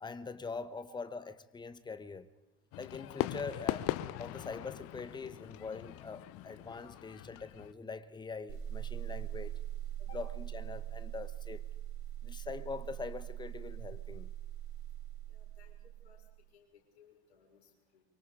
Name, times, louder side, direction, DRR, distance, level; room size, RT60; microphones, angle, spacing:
voice 1, 0.0-2.3 2.8-3.9 4.2-9.6 10.1-11.6 12.2-14.3, left 4 dB, 15° left, 1.1 m, -43 dB
Fireworks, 2.7-7.7, left 15 dB, 45° left, 0.9 m, -40 dB
sound 1, 8.5-16.3, right 12 dB, 40° right, 5.4 m, -42 dB
voice 2, 15.3-16.2 16.5-18.0, left 7 dB, 70° left, 5.8 m, -62 dB
24.5 x 24.0 x 5.0 m
figure-of-eight pair, 75°, 33 cm